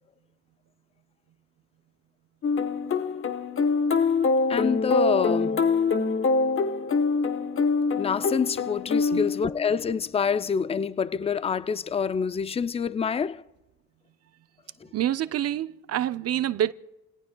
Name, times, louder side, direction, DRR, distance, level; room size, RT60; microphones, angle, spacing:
sound 1, 2.4-9.9, left 4 dB, 45° left, 1.0 m, -25 dB
voice 1, 4.5-5.7 8.0-13.4, left 6 dB, 20° left, 0.4 m, -27 dB
voice 2, 14.9-16.7, right 11 dB, 55° right, 0.5 m, -27 dB
29.0 x 18.0 x 2.2 m
cardioid pair, 90°, 30 cm